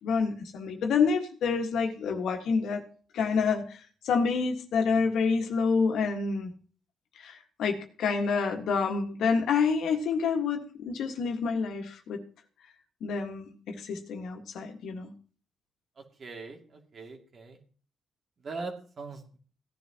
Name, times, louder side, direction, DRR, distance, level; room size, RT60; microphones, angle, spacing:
voice 1, 0.0-2.8 3.1-6.5 7.2-12.2 13.0-15.1, left 5 dB, 75° left, 4 dB, 1.7 m, -28 dB
voice 2, 16.2-16.6 16.9-17.6 18.4-19.4, right 3 dB, 45° right, 3 dB, 2.4 m, -40 dB
16.5 x 10.5 x 3.0 m, 0.41 s
cardioid pair, 90°, 0 cm